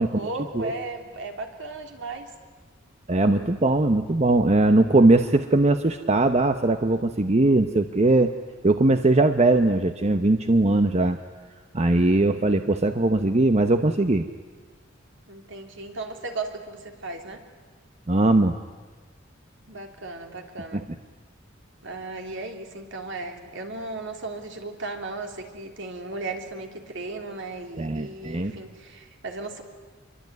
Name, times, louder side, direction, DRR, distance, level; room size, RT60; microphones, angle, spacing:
voice 1, 0.0-2.3 15.3-17.4 19.7-20.9 21.8-29.6, right 3 dB, 65° right, 4 dB, 3.2 m, -36 dB
voice 2, 3.1-8.3 8.6-11.2 11.7-14.3 18.1-18.5 20.7-20.8 27.8-28.5, right 2 dB, 35° right, 8 dB, 0.9 m, -20 dB
26.5 x 23.0 x 9.5 m, 1.4 s
head